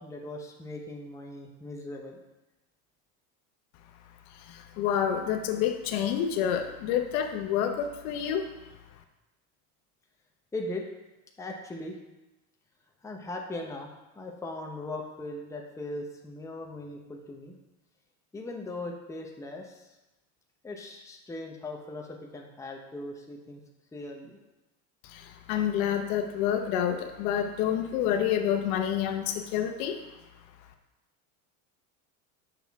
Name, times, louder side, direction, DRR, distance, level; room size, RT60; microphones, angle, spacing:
voice 1, 0.0-2.2 10.5-10.8 11.4-12.0 13.0-13.9 14.1-17.6 18.3-19.9 20.6-23.6 23.9-24.4, left 2 dB, 5° left, 0 dB, 0.8 m, -39 dB
voice 2, 4.5-8.4 25.1-30.0, left 9 dB, 70° left, 6 dB, 0.9 m, -28 dB
6.9 x 5.9 x 3.5 m, 1.0 s
supercardioid pair, 125°, 43 cm